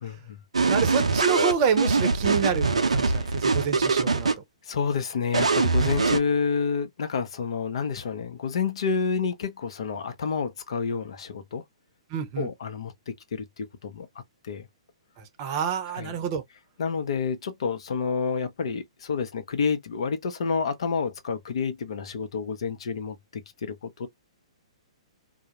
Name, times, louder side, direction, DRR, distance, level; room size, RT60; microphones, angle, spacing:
voice 1, 0.0-0.4 3.1-3.4 4.7-11.6 12.4-14.1 14.4-14.7 15.9-16.2 16.8-24.1, left 5 dB, 60° left, 0.6 m, -29 dB
sound 1, 0.5-4.4 5.3-6.2, right 4 dB, 80° right, 0.5 m, -23 dB
voice 2, 0.7-4.3 5.5-5.6 12.1-12.5 15.2-16.4, right 6 dB, 40° right, 0.6 m, -28 dB
2.3 x 2.0 x 2.8 m
figure-of-eight pair, 120°, 3 cm